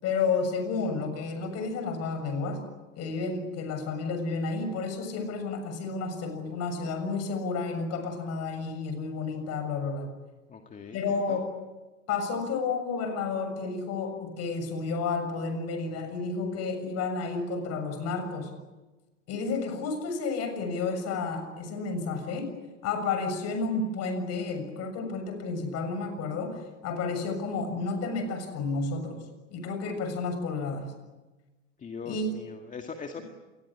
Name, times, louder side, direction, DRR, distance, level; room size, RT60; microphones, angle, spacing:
voice 1, 0.0-2.6 3.0-10.1 10.9-11.5 12.1-18.5 19.3-22.5 22.8-29.2 29.5-30.9 32.1-32.3, left 4 dB, 40° left, 7 dB, 6.9 m, -31 dB
voice 2, 10.5-11.4 31.8-33.2, left 5 dB, 20° left, 4 dB, 2.1 m, -41 dB
27.0 x 21.0 x 8.7 m, 1.2 s
hypercardioid pair, 110°, 39 cm